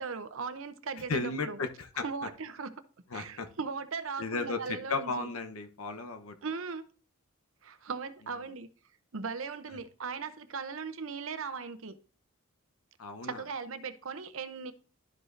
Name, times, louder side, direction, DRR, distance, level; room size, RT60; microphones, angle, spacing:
voice 1, 0.0-1.6 2.0-2.7 3.1-5.3 6.4-6.8 7.6-8.7 9.1-12.0 13.2-14.7, right 5 dB, 70° right, 11 dB, 0.7 m, -38 dB
voice 2, 1.1-2.0 3.1-3.5 4.2-6.4 13.0-13.4, left 3 dB, 85° left, 6 dB, 0.9 m, -34 dB
12.0 x 5.0 x 2.6 m, 0.39 s
head